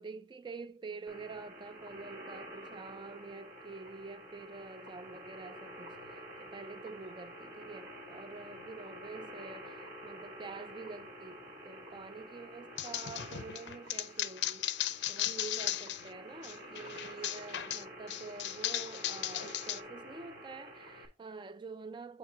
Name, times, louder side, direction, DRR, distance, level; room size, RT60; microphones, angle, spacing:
voice 1, 0.0-22.2, right 4 dB, 25° right, 0.3 m, -47 dB
sound 1, 1.1-21.1, equal, 50° right, 1.4 m, -49 dB
sound 2, 12.8-16.1 16.4-19.8, left 13 dB, 75° left, 0.4 m, -36 dB
7.3 x 5.0 x 2.7 m
head